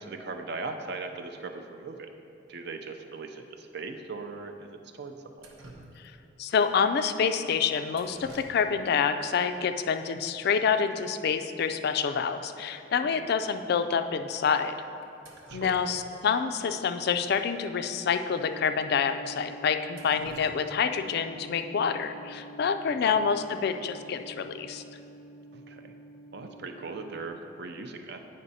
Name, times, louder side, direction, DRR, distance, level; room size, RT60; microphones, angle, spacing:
voice 1, 0.0-2.1 2.5-5.5 13.1-13.2 15.5-15.8 20.1-20.2 22.9-23.2 25.5-25.9 26.3-28.2, right 3 dB, 55° right, 6 dB, 0.5 m, -39 dB
Drip, 5.4-6.4 7.9-8.9 9.2-9.3 10.3-10.4 10.6-10.9 11.2-11.3 11.7-11.8 12.3-12.4 12.9-13.0 13.7-13.9 15.0-16.2 16.6-16.7 18.0-18.1 18.5-18.6 19.1-19.2 19.7-21.3 23.3-23.6 24.0-24.4, right 1 dB, 85° right, 0.9 m, -50 dB
voice 2, 6.4-14.7 15.5-24.8, left 6 dB, 55° left, 9 dB, 0.3 m, -27 dB
sound 1, 18.3-27.3, right 2 dB, 10° right, 0.7 m, -48 dB
8.6 x 5.4 x 4.1 m, 2.8 s
head